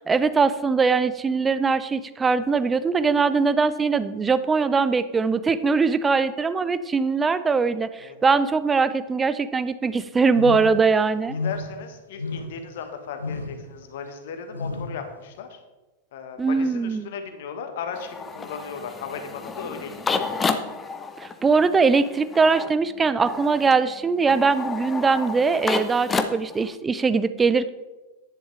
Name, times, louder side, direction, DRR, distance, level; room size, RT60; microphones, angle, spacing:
voice 1, 0.0-11.4 16.4-17.1 21.2-27.7, right 4 dB, 15° right, 14 dB, 0.5 m, -21 dB
sound 1, 10.3-10.8 11.3-11.8 12.2-12.7 13.2-13.6 14.5-15.0, left 3 dB, 80° left, 0.9 m, -31 dB
voice 2, 11.3-15.6 16.1-20.4, left 6 dB, 55° left, 6 dB, 1.4 m, -36 dB
sound 2, 17.9-26.8, left 4 dB, 15° left, 0.7 m, -31 dB
10.5 x 10.5 x 3.4 m, 1.1 s
figure-of-eight pair, 90°, 0 cm